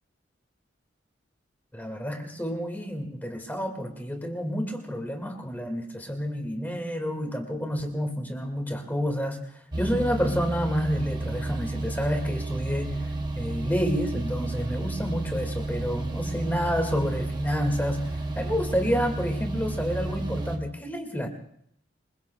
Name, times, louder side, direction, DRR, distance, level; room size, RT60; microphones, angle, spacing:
voice 1, 1.7-21.3, equal, 10° left, 4 dB, 1.9 m, -29 dB
generator rumble, 9.7-20.6, right 2 dB, 20° right, 1.0 m, -31 dB
27.0 x 22.0 x 2.3 m, 0.66 s
head